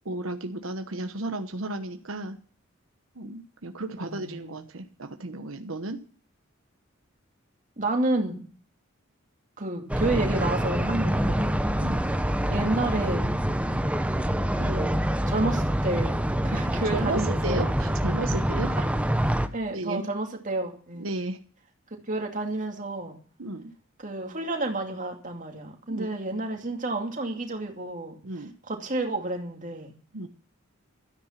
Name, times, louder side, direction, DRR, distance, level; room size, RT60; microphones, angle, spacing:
voice 1, 0.0-2.4 3.2-6.0 11.8-12.0 16.9-18.8 19.7-20.0 21.0-21.4 23.4-23.7 25.9-26.1 28.2-28.5 30.1-30.3, right 2 dB, 80° right, 6 dB, 1.1 m, -33 dB
voice 2, 4.0-4.6 7.8-8.4 9.6-11.5 12.5-13.3 14.6-15.0 15.3-16.2 16.4-17.7 18.8-18.9 19.5-21.1 22.1-23.2 24.0-28.2 28.7-29.9, right 2 dB, 40° right, 3 dB, 2.5 m, -30 dB
sound 1, 9.9-19.5, equal, 5° right, 0.8 m, -26 dB
13.0 x 9.8 x 5.8 m, 0.44 s
head